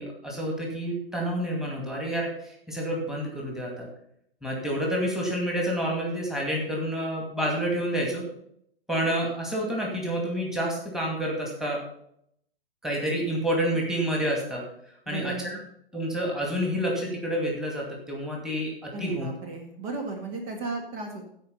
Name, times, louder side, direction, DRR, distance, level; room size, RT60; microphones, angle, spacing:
voice 1, 0.0-3.9 4.4-8.2 8.9-11.8 12.8-14.6 15.1-15.6 15.9-19.3, equal, ahead, -2 dB, 2.3 m, -29 dB
voice 2, 15.1-15.6 18.9-21.3, right 3 dB, 35° right, 3 dB, 1.9 m, -35 dB
15.0 x 5.1 x 5.3 m, 0.71 s
hypercardioid pair, 130°, 30 cm